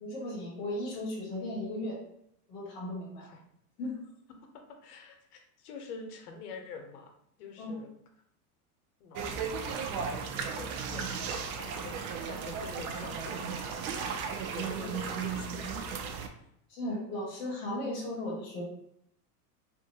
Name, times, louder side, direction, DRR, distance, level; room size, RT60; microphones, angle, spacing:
voice 1, 0.0-2.0 2.5-3.3 3.8-4.0 7.6-7.8 14.8-14.9 16.7-18.6, left 1 dB, 15° left, -6 dB, 0.3 m, -36 dB
voice 2, 4.8-7.1 7.4-7.9 9.0-13.7 14.1-15.9, left 4 dB, 75° left, 3 dB, 0.8 m, -46 dB
sound 1, 9.1-16.3, right 6 dB, 65° right, 0.5 m, -35 dB
2.5 x 2.5 x 2.7 m, 0.74 s
supercardioid pair, 150°, 46 cm